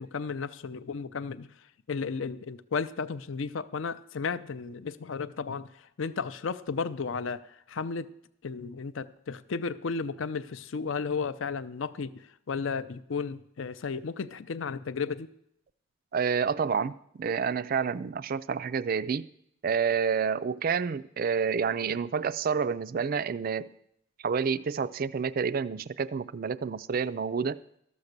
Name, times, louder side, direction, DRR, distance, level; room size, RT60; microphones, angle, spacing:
voice 1, 0.0-1.5 1.9-5.7 6.0-7.4 7.7-8.1 8.4-12.1 12.5-15.3, left 5 dB, 65° left, 14 dB, 0.5 m, -33 dB
voice 2, 16.1-19.3 19.6-23.7 24.2-27.6, right 6 dB, 40° right, 15 dB, 0.3 m, -29 dB
13.0 x 7.1 x 6.6 m, 0.74 s
head